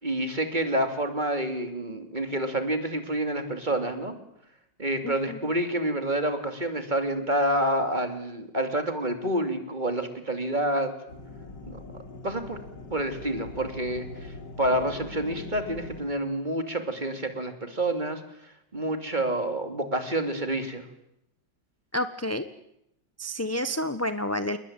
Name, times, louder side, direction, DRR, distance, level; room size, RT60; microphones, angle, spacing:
voice 1, 0.0-4.1 4.8-10.9 11.7-11.8 12.2-12.6 12.9-20.8, right 1 dB, 25° right, 7 dB, 3.1 m, -28 dB
voice 2, 5.0-5.4 21.9-22.5 23.2-24.6, left 1 dB, 10° left, 10 dB, 0.8 m, -29 dB
sound 1, 11.1-16.1, left 3 dB, 75° left, 4.0 m, -42 dB
29.0 x 22.0 x 9.0 m, 0.81 s
omnidirectional pair, 1.9 m